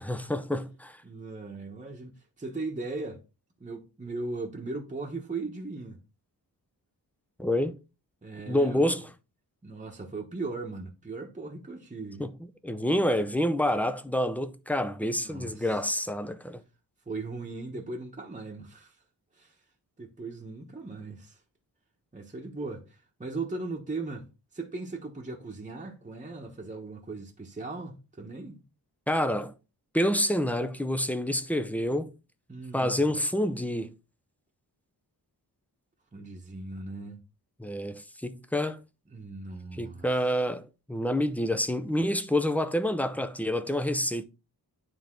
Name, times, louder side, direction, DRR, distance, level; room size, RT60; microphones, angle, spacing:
voice 1, 0.1-1.0 7.4-7.8 8.5-9.1 12.2-12.3 12.6-16.6 29.1-29.5 29.9-32.1 32.7-33.9 37.6-38.8 39.8-44.2, left 1 dB, 5° left, 0.6 m, -28 dB
voice 2, 1.0-2.1 2.4-3.2 3.6-6.0 8.2-8.8 9.6-12.2 15.2-15.7 17.1-19.0 19.4-19.5 20.0-21.4 22.1-24.3 24.5-28.6 32.5-33.1 36.1-37.2 39.1-40.1, right 3 dB, 20° right, 1.1 m, -38 dB
9.6 x 3.6 x 3.7 m
wide cardioid pair, 110°, 38 cm